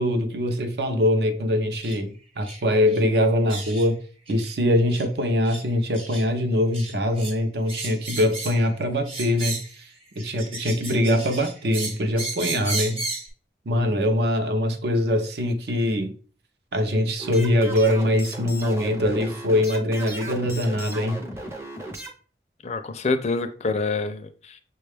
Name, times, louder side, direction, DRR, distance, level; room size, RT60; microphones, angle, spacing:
voice 1, 0.0-4.0 4.3-9.9 10.2-13.0 13.7-16.1 16.7-21.2, left 1 dB, 65° right, 0.6 m, -23 dB
sound 1, 1.8-2.0 2.4-2.6 2.9-3.0 3.5-3.9 4.3-4.5 4.9-5.1 5.4-5.6 5.9-6.2 6.7-7.3 7.7-8.7 9.0-9.8 10.2-13.3, right 3 dB, 30° right, 0.9 m, -34 dB
sound 2, 17.2-22.1, right 1 dB, 15° right, 0.6 m, -36 dB
voice 2, 22.6-24.6, left 3 dB, 40° left, 0.4 m, -26 dB
6.4 x 2.3 x 3.3 m
head